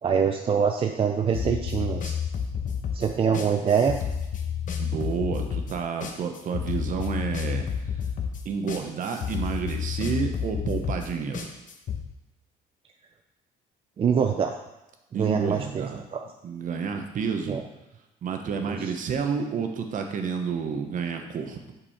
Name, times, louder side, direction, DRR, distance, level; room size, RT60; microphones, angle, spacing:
voice 1, 0.0-2.1 2.9-4.0 14.0-14.5 15.2-16.2 17.5-17.6 18.7-18.8, right 7 dB, 35° right, 4 dB, 0.5 m, -24 dB
sound 1, 1.3-12.0, left 7 dB, 50° left, 1.0 m, -30 dB
voice 2, 4.8-7.7 8.4-11.5 15.1-16.0 16.4-17.6 18.2-21.7, right 6 dB, 50° right, 5 dB, 0.9 m, -30 dB
5.5 x 5.5 x 4.2 m, 0.96 s
cardioid pair, 110°, 17 cm